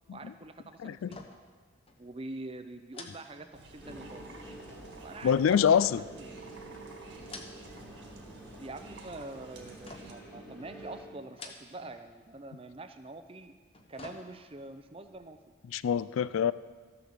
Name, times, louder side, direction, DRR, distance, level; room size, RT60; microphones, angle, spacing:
voice 1, 0.1-1.2 2.0-4.3 5.0-6.5 8.6-13.5 13.9-15.4, right 2 dB, 25° right, 9 dB, 0.5 m, -45 dB
sound 1, 1.0-1.6 1.9-2.0 2.9-4.0 5.5-6.6 7.1-7.9 8.2-8.8 9.8-10.4 11.2-12.0 12.3-12.4 13.5-14.7 15.1-15.2, left 3 dB, 30° left, 0.8 m, -49 dB
sound 2, 3.5-10.1, right 2 dB, 60° right, 1.7 m, -52 dB
sound 3, 3.8-11.0, right 1 dB, 10° left, 1.6 m, -48 dB
voice 2, 5.2-6.0 15.7-16.5, left 8 dB, 80° left, 17 dB, 0.3 m, -25 dB
14.0 x 6.8 x 6.6 m, 1.5 s
head